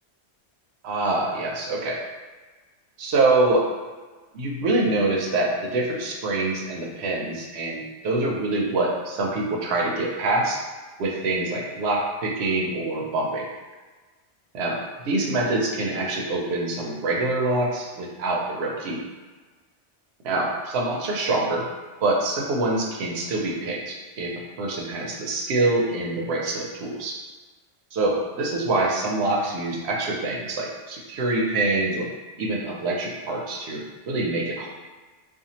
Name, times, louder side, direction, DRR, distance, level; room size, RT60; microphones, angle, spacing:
voice 1, 0.8-2.0 3.0-3.7 4.3-10.6 11.0-13.5 14.5-14.8 15.0-19.0 20.2-21.6 22.0-27.2 27.9-32.1 32.4-34.7, right 2 dB, 75° right, -1 dB, 0.8 m, -25 dB
2.6 x 2.2 x 2.8 m, 1.3 s
omnidirectional pair, 1.1 m